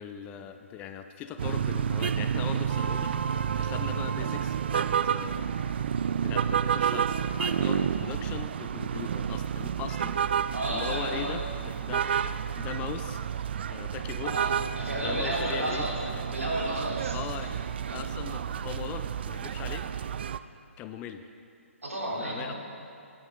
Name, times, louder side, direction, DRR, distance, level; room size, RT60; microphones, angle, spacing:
voice 1, 0.0-3.1 3.6-5.5 6.2-10.2 10.7-13.2 13.7-14.4 15.0-15.9 17.1-17.5 17.9-19.9 20.8-21.2 22.2-22.5, left 8 dB, 20° left, 8 dB, 0.4 m, -39 dB
sound 1, 1.4-20.4, right 8 dB, 50° right, 0.4 m, -30 dB
voice 2, 10.5-11.4 14.2-16.0 16.3-17.1 17.4-17.5 17.9-18.0 21.8-22.6, right 1 dB, 80° right, -3 dB, 3.2 m, -32 dB
15.5 x 9.9 x 3.9 m, 2.5 s
figure-of-eight pair, 135°, 7 cm